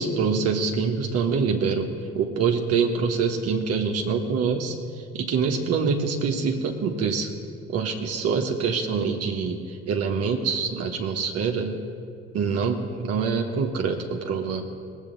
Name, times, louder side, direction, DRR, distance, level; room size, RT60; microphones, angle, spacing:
voice 1, 0.0-1.9 2.1-7.3 7.7-11.8 12.3-14.7, right 5 dB, 45° right, 2 dB, 1.4 m, -25 dB
21.0 x 8.4 x 4.0 m, 2.2 s
figure-of-eight pair, 55°, 33 cm